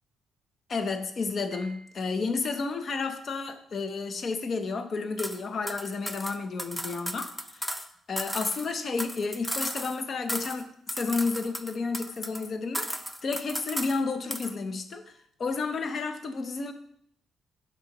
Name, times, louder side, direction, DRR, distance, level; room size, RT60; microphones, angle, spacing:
voice 1, 0.7-7.7 8.1-15.1 15.4-16.7, left 4 dB, 45° left, 9 dB, 0.7 m, -31 dB
Piano, 1.5-2.5, right 2 dB, 35° right, 0.9 m, -52 dB
sound 1, 5.2-5.4 5.7-7.9 8.2-10.0 10.3-10.6 10.9-12.5 12.7-14.0 14.3-14.5, equal, ahead, 0.4 m, -35 dB
5.6 x 4.9 x 3.9 m, 0.69 s
cardioid pair, 90°, 0 cm